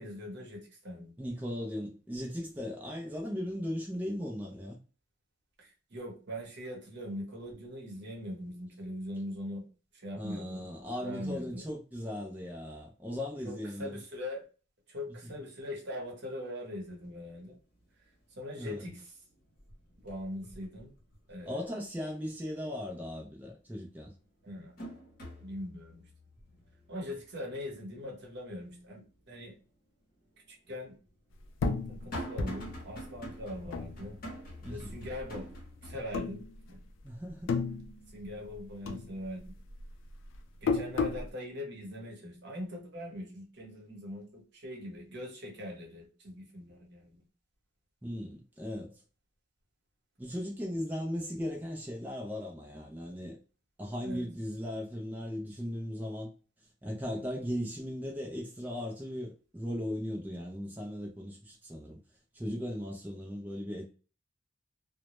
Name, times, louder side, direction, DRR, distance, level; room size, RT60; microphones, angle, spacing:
voice 1, 0.0-1.1 5.6-9.6 9.9-10.6 11.0-11.6 13.4-14.4 14.9-17.5 18.4-19.1 20.0-20.9 21.3-21.6 24.4-24.7 25.4-26.0 26.9-29.0 29.3-29.5 30.7-30.9 31.9-34.2 34.7-35.5 35.8-36.8 38.1-39.5 40.6-47.2 54.0-54.3, left 1 dB, 60° right, 0.8 m, -41 dB
voice 2, 1.2-4.8 10.2-14.0 15.2-15.3 18.6-18.8 21.5-24.1 34.6-35.0 37.0-37.5 48.0-49.0 50.2-53.4 53.8-56.3 56.8-62.0 62.3-63.8, equal, 10° right, 0.3 m, -37 dB
sound 1, 16.8-16.9 17.3-17.8 18.2-19.0 19.3-21.5 21.9-22.0 23.5-23.6 24.1-29.2 29.6-29.7 30.7-36.0, equal, 50° left, 0.8 m, -46 dB
sound 2, 31.6-34.5 34.8-35.6 36.1-37.0 37.3-38.6 38.9-41.3, left 4 dB, 75° left, 0.3 m, -34 dB
2.1 x 2.0 x 2.9 m
head